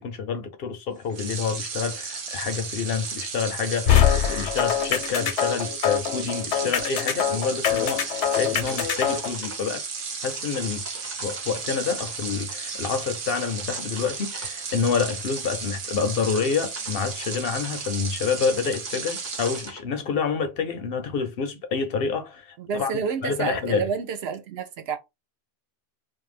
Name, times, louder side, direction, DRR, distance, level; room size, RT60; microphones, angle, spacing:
voice 1, 0.0-9.8 10.2-10.8 11.2-22.9 23.2-23.9, left 5 dB, 65° left, 0.7 m, -28 dB
sound 1, 1.1-19.7, right 5 dB, 85° right, 1.1 m, -34 dB
sound 2, 3.9-9.3, left 9 dB, 85° left, 0.9 m, -23 dB
sound 3, 8.7-9.6 10.2-17.9 18.3-19.8, right 1 dB, 15° right, 0.5 m, -46 dB
voice 2, 22.6-25.0, right 6 dB, 65° right, 0.8 m, -29 dB
2.6 x 2.1 x 3.1 m
omnidirectional pair, 1.2 m